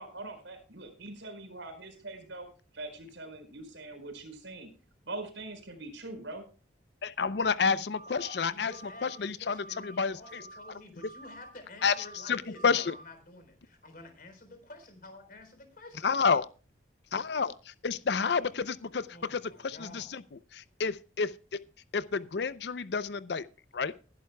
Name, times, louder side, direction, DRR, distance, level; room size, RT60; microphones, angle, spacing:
voice 1, 0.0-2.5 2.7-4.7 5.1-6.5 8.2-8.3, right 2 dB, 80° right, 4.4 m, -43 dB
voice 2, 7.0-8.7 9.0-10.4 11.8-11.9 12.3-12.9 16.0-16.5 17.1-20.2 20.5-21.6 21.9-23.5 23.7-23.9, left 5 dB, 65° left, 0.5 m, -30 dB
sound 1, 7.9-8.4 8.7-9.2 9.5-10.0 10.2-10.7 11.0-11.5 11.8-12.3 12.6-13.0, right 2 dB, 80° left, 2.9 m, -49 dB
voice 3, 8.5-16.1 19.1-20.1, left 2 dB, 45° left, 4.0 m, -50 dB
19.5 x 11.0 x 2.2 m
head